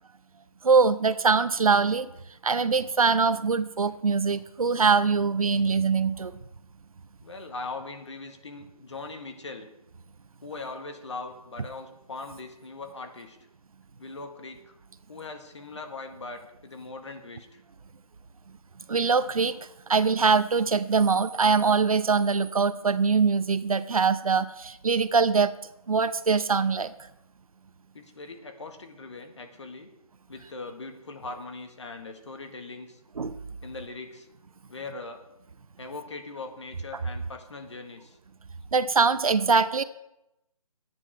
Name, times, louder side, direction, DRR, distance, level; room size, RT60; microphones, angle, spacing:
voice 1, 0.6-2.1 2.4-6.4 18.9-25.5 25.9-26.9 33.2-33.4 38.7-39.8, right 5 dB, 65° right, 14 dB, 0.8 m, -23 dB
voice 2, 7.2-9.7 10.4-13.4 14.0-14.8 15.1-17.6 27.9-29.9 30.3-33.0 33.6-34.3 34.7-35.3 35.8-38.2, left 3 dB, 50° left, 5 dB, 1.8 m, -40 dB
12.5 x 9.8 x 4.7 m, 0.86 s
hypercardioid pair, 175°, 19 cm